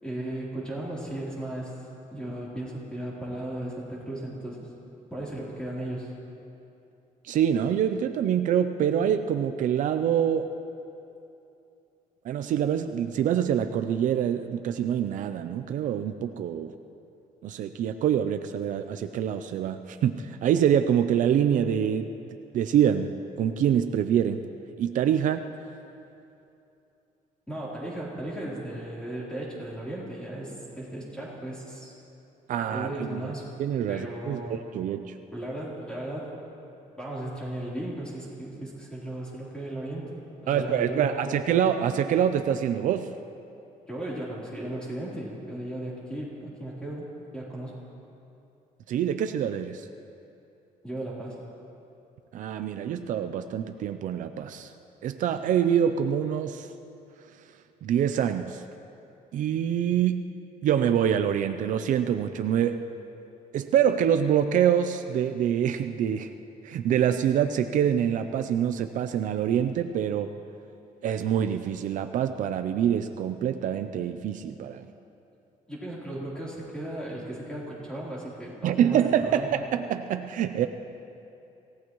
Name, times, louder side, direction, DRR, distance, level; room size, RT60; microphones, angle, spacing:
voice 1, 0.0-1.8 2.1-4.7 5.1-6.1 27.5-31.9 32.7-33.5 33.9-34.6 35.3-36.4 36.9-41.4 43.9-47.7 50.8-51.4 75.7-79.5, right 1 dB, 5° left, -6 dB, 3.7 m, -36 dB
voice 2, 7.2-10.5 12.2-16.7 17.4-22.1 22.5-23.1 23.4-24.4 24.8-25.5 32.5-33.3 33.6-35.2 40.5-43.1 48.9-49.9 52.3-54.7 55.0-56.7 57.8-58.6 59.3-60.3 60.6-62.9 63.5-66.3 66.6-70.3 71.0-74.9 78.6-80.7, right 9 dB, 65° right, 8 dB, 0.5 m, -25 dB
26.5 x 17.0 x 3.1 m, 2.8 s
cardioid pair, 165°, 14 cm